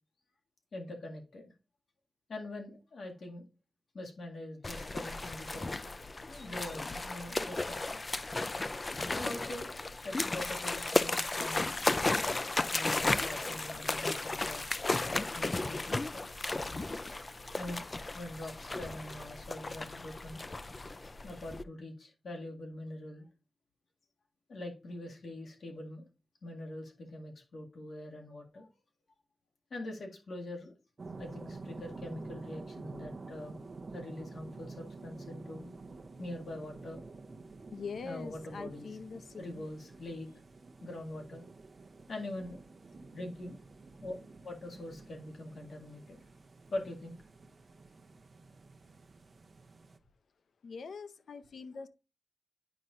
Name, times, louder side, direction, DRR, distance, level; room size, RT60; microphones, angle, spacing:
voice 1, 0.7-1.5 2.3-3.4 3.9-5.8 6.3-8.0 9.1-9.7 10.0-11.7 12.7-16.3 17.6-17.8 18.1-20.4 21.2-23.3 24.5-26.1 26.4-28.7 29.7-30.7 31.2-33.6 33.9-35.7 36.2-37.0 38.0-38.9 39.4-40.4 40.8-41.4 42.1-42.6 43.1-43.6 44.0-44.2 44.4-46.2 46.7-47.2, left 1 dB, 75° left, 2.0 m, -43 dB
sound 1, 4.6-21.6, left 2 dB, 30° left, 0.4 m, -34 dB
sound 2, 31.0-50.0, right 3 dB, 45° right, 0.7 m, -49 dB
voice 2, 37.7-39.7 50.6-51.9, left 5 dB, 90° left, 0.6 m, -43 dB
9.2 x 5.5 x 2.5 m
wide cardioid pair, 120°, 0 cm